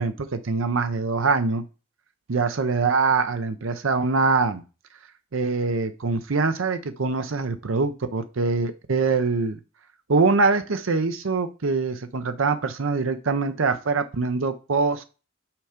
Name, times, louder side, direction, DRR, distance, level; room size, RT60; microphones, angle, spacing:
voice 1, 0.0-1.6 2.3-4.6 5.3-9.6 10.1-15.0, right 4 dB, 75° right, 9 dB, 0.7 m, -23 dB
6.0 x 4.5 x 5.0 m, 0.32 s
head